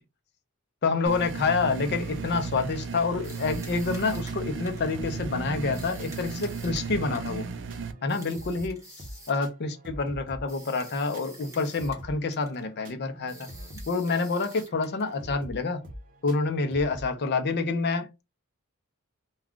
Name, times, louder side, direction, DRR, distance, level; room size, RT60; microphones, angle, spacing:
voice 1, 0.8-7.5 8.0-8.8 9.3-13.5 13.9-15.8 16.2-18.1, left 4 dB, 50° left, 0.6 m, -28 dB
sound 1, 1.1-7.9, right 5 dB, 55° right, 0.4 m, -35 dB
sound 2, 3.2-5.0 5.7-7.5 8.1-9.5 10.5-12.1 12.3-12.7 13.3-15.2, right 1 dB, 15° right, 1.0 m, -49 dB
sound 3, 3.4-17.1, equal, 40° right, 0.8 m, -46 dB
2.3 x 2.3 x 3.6 m
head